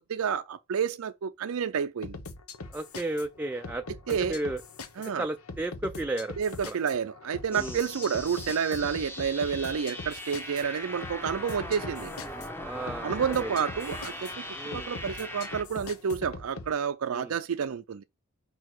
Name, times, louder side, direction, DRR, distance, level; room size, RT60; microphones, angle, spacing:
voice 1, 0.0-2.2 4.1-4.4 5.0-5.2 6.4-12.1 13.0-14.4 14.7-18.0, right 7 dB, 75° right, 0.4 m, -30 dB
sound 1, 2.0-16.7, left 3 dB, 80° left, 1.0 m, -42 dB
voice 2, 2.7-4.6 5.2-6.3 6.7-6.8 7.5-7.8 12.6-13.5 14.5-14.9 17.1-17.4, right 2 dB, 10° right, 0.3 m, -34 dB
sound 2, 7.5-15.6, left 1 dB, 10° left, 0.9 m, -40 dB
5.4 x 4.7 x 6.0 m
head